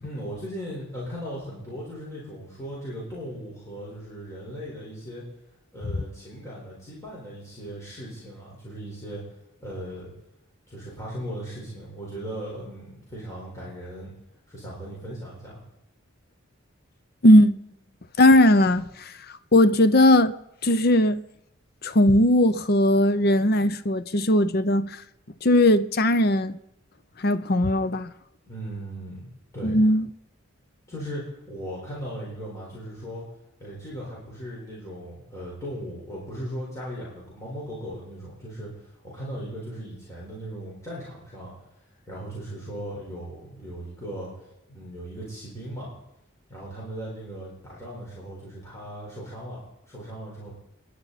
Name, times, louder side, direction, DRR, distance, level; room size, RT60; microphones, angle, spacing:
voice 1, 0.0-5.2 5.7-9.2 9.6-10.1 10.7-14.1 14.5-15.6 28.5-29.3 29.5-29.8 30.9-33.2 33.6-41.5 42.0-44.3 44.7-45.9 46.5-50.5, equal, 15° left, 4.4 m, -37 dB
voice 2, 17.2-17.6 18.2-19.2 19.5-20.4 20.6-21.2 21.8-25.0 25.4-26.6 27.2-28.1 29.6-30.1, left 1 dB, 45° left, 0.7 m, -18 dB
29.5 x 10.5 x 4.2 m
head